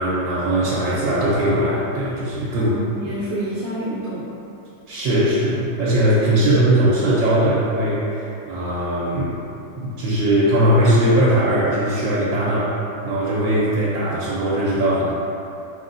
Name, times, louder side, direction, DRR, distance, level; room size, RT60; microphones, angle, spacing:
voice 1, 0.0-2.8 4.9-9.4 9.8-12.7 13.0-15.1, right 1 dB, 85° right, -7 dB, 1.4 m, -19 dB
voice 2, 2.5-4.3 6.2-6.6, equal, 70° right, -10 dB, 1.3 m, -29 dB
4.9 x 3.0 x 2.5 m, 2.8 s
omnidirectional pair, 2.0 m